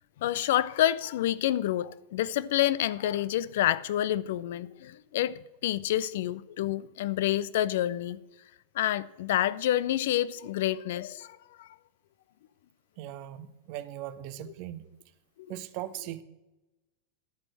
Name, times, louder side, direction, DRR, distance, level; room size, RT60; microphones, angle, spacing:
voice 1, 0.2-8.2 8.8-11.7, left 13 dB, 55° left, 0.4 m, -28 dB
voice 2, 13.0-14.9 15.5-16.2, right 13 dB, 45° right, 0.6 m, -39 dB
11.5 x 4.4 x 7.5 m
figure-of-eight pair, 90°, 0 cm